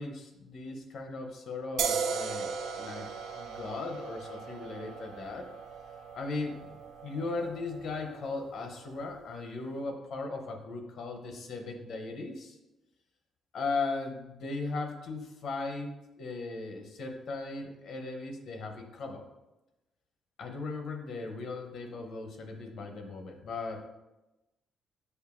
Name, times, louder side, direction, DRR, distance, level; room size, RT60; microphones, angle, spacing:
voice 1, 0.0-3.1 3.3-5.5 6.1-6.6 7.0-12.6 13.5-15.9 16.2-19.2 20.4-23.8, left 3 dB, 65° left, 3 dB, 0.7 m, -37 dB
sound 1, 1.8-9.1, right 6 dB, 80° right, 0.3 m, -38 dB
6.6 x 2.6 x 2.5 m, 1.0 s
cardioid pair, 90°, 0 cm